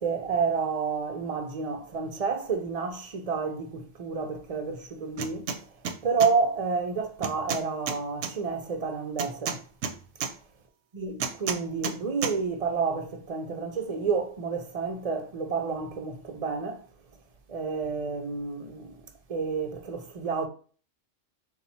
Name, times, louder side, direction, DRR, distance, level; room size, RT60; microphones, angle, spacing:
voice 1, 0.0-5.7 6.0-9.6 10.9-16.9 17.5-19.0 19.3-20.5, right 5 dB, 45° right, 0.5 m, -30 dB
sound 1, 5.2-5.6 5.8-6.3 7.2-8.3 9.2-10.3 11.2-12.0 12.2-12.3, right 6 dB, 70° right, 0.8 m, -31 dB
4.1 x 2.4 x 4.2 m
omnidirectional pair, 1.2 m